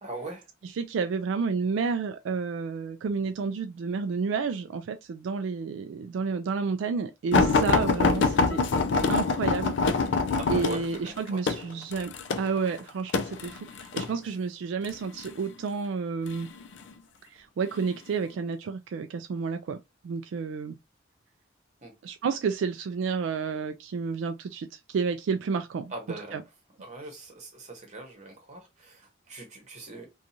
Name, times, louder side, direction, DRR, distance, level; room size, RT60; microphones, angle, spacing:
voice 1, 0.0-0.5 10.2-11.4 21.8-21.9 25.9-26.4 26.8-30.1, right 2 dB, 40° right, 1.0 m, -41 dB
voice 2, 0.8-8.6 9.1-9.7 10.5-16.5 17.3-19.8 20.0-20.8 22.0-25.9 26.3-26.4, right 5 dB, 80° right, 0.3 m, -30 dB
sound 1, 7.3-14.1 14.9-15.3 16.3-16.9 17.6-17.8 18.2-18.3, left 4 dB, 70° left, 0.4 m, -25 dB
2.6 x 2.3 x 2.8 m
head